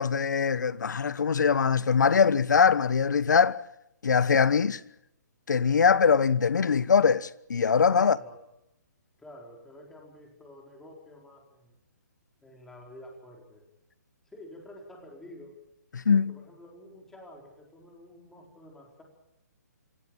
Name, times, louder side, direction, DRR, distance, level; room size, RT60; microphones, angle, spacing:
voice 1, 0.0-3.6 4.0-4.8 5.5-8.2 15.9-16.3, left 6 dB, 80° left, 1.2 m, -22 dB
voice 2, 7.8-8.4 9.2-11.7 12.4-13.7 14.3-15.6 16.1-19.0, left 1 dB, 5° left, 4.6 m, -49 dB
26.0 x 16.5 x 9.0 m
hypercardioid pair, 160°, 10 cm